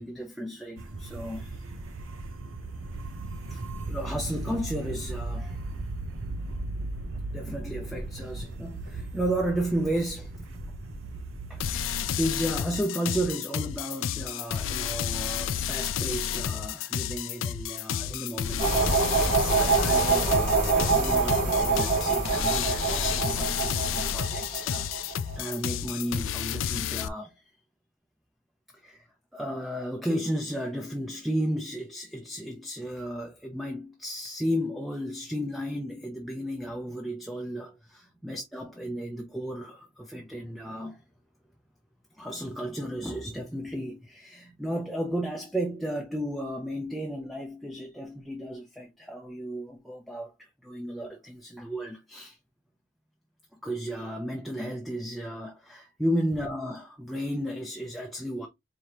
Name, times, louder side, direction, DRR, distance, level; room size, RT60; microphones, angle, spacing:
voice 1, 0.0-1.7 3.5-3.6 3.9-5.6 7.3-10.3 11.5-27.3 28.8-29.0 29.3-41.0 42.2-52.4 53.6-58.5, equal, ahead, 0.5 m, -34 dB
sound 1, 0.8-12.2, right 2 dB, 80° right, 0.8 m, -37 dB
sound 2, 11.6-27.1, left 9 dB, 70° left, 0.4 m, -31 dB
sound 3, 18.6-25.5, right 4 dB, 35° right, 1.8 m, -25 dB
4.9 x 2.8 x 2.9 m
head